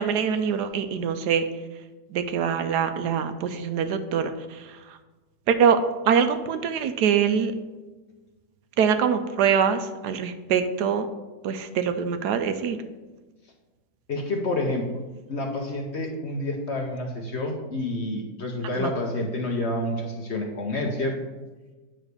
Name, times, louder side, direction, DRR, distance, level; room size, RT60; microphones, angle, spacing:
voice 1, 0.0-1.5 2.1-4.8 5.5-7.5 8.8-11.1 11.4-12.8 18.8-18.9, right 7 dB, 75° right, 9 dB, 1.1 m, -24 dB
voice 2, 14.1-14.8 15.3-21.2, left 1 dB, 50° left, 1 dB, 0.9 m, -28 dB
8.9 x 3.2 x 6.6 m, 1.2 s
omnidirectional pair, 1.8 m